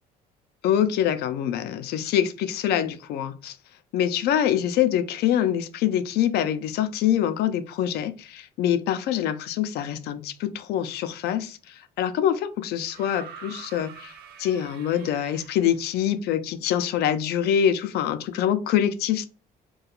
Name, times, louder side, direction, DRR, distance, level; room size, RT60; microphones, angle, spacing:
voice 1, 0.6-3.6 3.9-14.1 14.4-19.2, left 10 dB, 75° left, 0.4 m, -25 dB
sound 1, 12.9-15.9 17.2-17.3, right 7 dB, 75° right, 0.5 m, -45 dB
2.3 x 2.3 x 2.9 m
cardioid pair, 110°, 17 cm